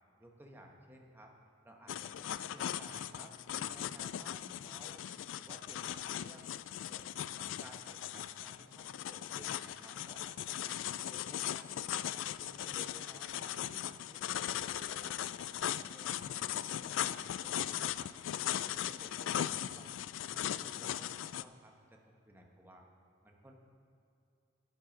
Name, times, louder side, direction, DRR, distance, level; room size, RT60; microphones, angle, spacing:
voice 1, 0.2-1.3 1.6-5.0 5.3-6.5 6.8-11.7 12.1-15.2 15.5-17.2 17.4-18.1 18.7-19.9 20.3-22.0 22.3-22.9 23.2-23.5, right 1 dB, 10° right, 1 dB, 1.1 m, -57 dB
sound 1, 1.9-21.4, left 11 dB, 70° left, 0.3 m, -38 dB
11.0 x 10.0 x 5.2 m, 2.6 s
head